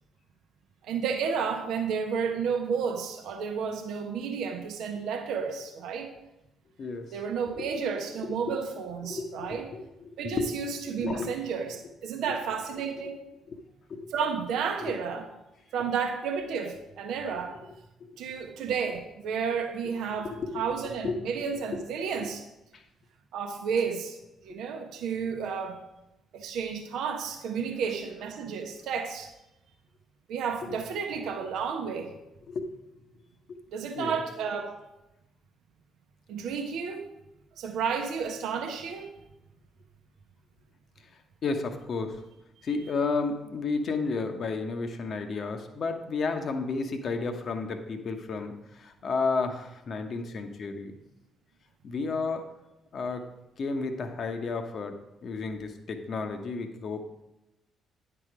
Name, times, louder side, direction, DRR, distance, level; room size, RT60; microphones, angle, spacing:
voice 1, 0.8-6.1 7.1-9.7 10.2-13.2 14.1-15.3 15.7-17.6 18.2-22.4 23.3-24.2 24.4-25.8 26.3-29.3 30.3-32.1 33.7-34.8 36.3-37.1 37.6-39.1, right 6 dB, 65° right, 4 dB, 0.8 m, -31 dB
voice 2, 6.8-7.2 7.6-7.7 8.2-8.3 9.0-11.3 13.5-13.6 13.9-14.1 20.2-20.6 21.0-21.1 22.2-22.3 22.7-22.8 32.5-32.7 34.0-34.2 41.4-42.2 42.6-50.9 51.8-52.4 52.9-53.2 53.6-55.0 55.2-57.2, left 4 dB, 55° left, 6 dB, 0.9 m, -32 dB
9.7 x 4.9 x 4.9 m, 0.94 s
hypercardioid pair, 45°, 0 cm